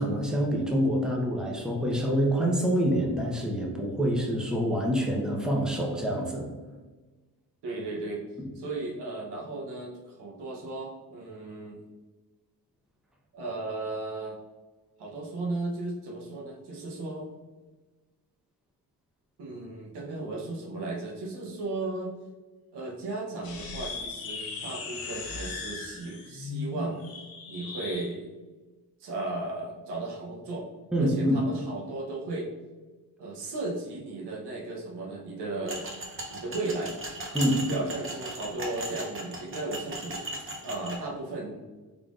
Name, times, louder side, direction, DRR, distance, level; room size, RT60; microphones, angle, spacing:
voice 1, 0.0-6.5 8.4-8.5 30.9-31.4 37.3-37.6, equal, ahead, -1 dB, 0.7 m, -26 dB
voice 2, 7.6-8.2 8.5-11.8 13.3-14.4 15.0-17.3 19.4-22.1 22.7-27.0 27.5-28.3 29.0-30.7 31.0-32.5 33.2-35.8 36.3-37.0 37.7-41.6, right 2 dB, 85° right, -1 dB, 0.9 m, -35 dB
sound 1, 23.4-28.1, left 3 dB, 65° left, 0.9 m, -37 dB
sound 2, 35.7-41.0, right 2 dB, 30° right, 0.8 m, -37 dB
3.8 x 3.3 x 2.4 m, 1.3 s
cardioid pair, 85°, 39 cm